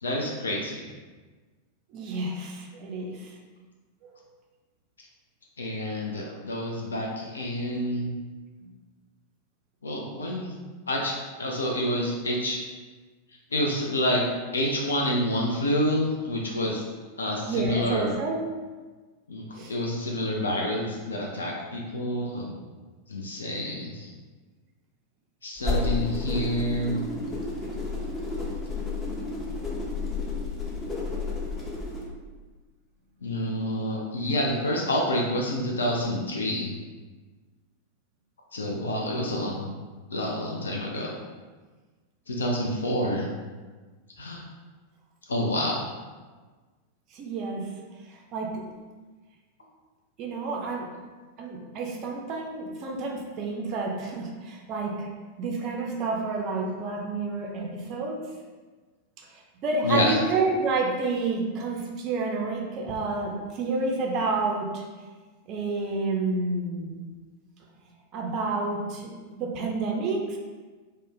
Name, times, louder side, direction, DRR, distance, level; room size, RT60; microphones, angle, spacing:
voice 1, 0.0-0.9 5.6-8.1 9.8-10.6 10.9-12.6 13.5-14.2 14.5-16.8 17.2-18.1 19.3-22.5 23.1-24.1 25.4-27.0 33.2-36.7 38.5-39.7 40.1-41.2 42.3-43.3 44.2-44.4 45.3-45.8 59.8-60.2, left 1 dB, 70° left, -1 dB, 0.3 m, -28 dB
voice 2, 1.9-3.4 4.0-4.2 8.6-8.7 17.4-18.4 19.5-19.7 47.1-47.7 48.1-48.6 50.2-50.9 51.4-55.1 55.4-58.3 59.2-64.8 65.5-67.0 68.1-70.4, right 3 dB, 35° right, 0 dB, 0.4 m, -30 dB
sound 1, 25.6-32.1, left 3 dB, 20° left, 0.6 m, -31 dB
2.5 x 2.0 x 3.5 m, 1.4 s
figure-of-eight pair, 90°, 0 cm